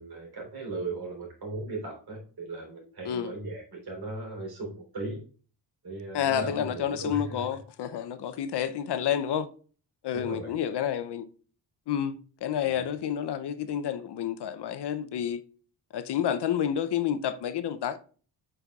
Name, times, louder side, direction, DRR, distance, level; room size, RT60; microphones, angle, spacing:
voice 1, 0.0-5.2 5.8-7.4 10.1-10.5 12.6-12.8, right 2 dB, 60° right, 3.6 m, -37 dB
voice 2, 6.1-9.5 10.0-11.3 11.9-15.4 15.9-18.0, left 9 dB, 65° left, 0.7 m, -29 dB
8.1 x 5.6 x 2.4 m
cardioid pair, 115°, 43 cm